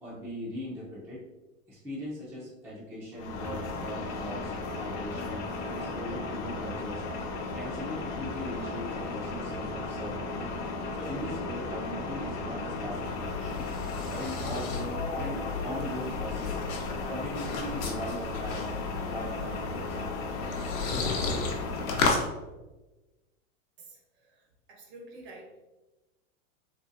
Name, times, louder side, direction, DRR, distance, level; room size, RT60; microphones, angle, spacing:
voice 1, 0.0-1.2 1.7-7.0 7.5-10.2 10.9-13.7 14.1-16.6 17.1-18.7 19.1-20.0 20.7-21.2, equal, 5° right, -7 dB, 0.5 m, -40 dB
sound 1, 3.1-22.0, left 3 dB, 50° left, 0.7 m, -35 dB
sound 2, 12.7-22.3, left 4 dB, 85° left, 0.8 m, -34 dB
voice 2, 23.8-25.6, right 2 dB, 50° right, 1 dB, 0.9 m, -50 dB
3.9 x 2.1 x 2.5 m, 1.1 s
hypercardioid pair, 135°, 40 cm